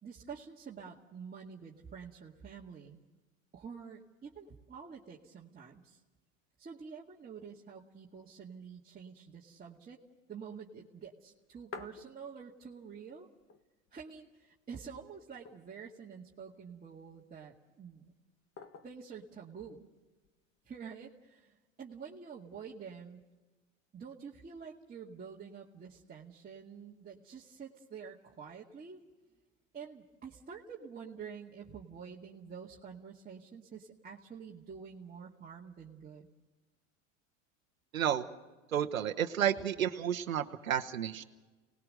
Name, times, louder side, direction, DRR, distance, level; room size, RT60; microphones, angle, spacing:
voice 1, 0.0-3.0 3.5-6.0 6.6-10.0 10.3-13.3 13.9-18.1 18.8-19.9 20.7-23.2 23.9-29.0 29.7-36.3, right 6 dB, 20° right, -4 dB, 2.1 m, -48 dB
sound 1, 11.2-12.7 13.1-13.2 13.4-14.2 14.6-14.7 15.2-16.0 16.7-17.4 18.6-19.1 20.2-20.8, left 5 dB, 35° left, 1.7 m, -51 dB
voice 2, 37.9-38.3 38.7-41.2, right 9 dB, 90° right, 5 dB, 1.1 m, -31 dB
28.0 x 19.5 x 6.6 m, 1.2 s
hypercardioid pair, 85°, 39 cm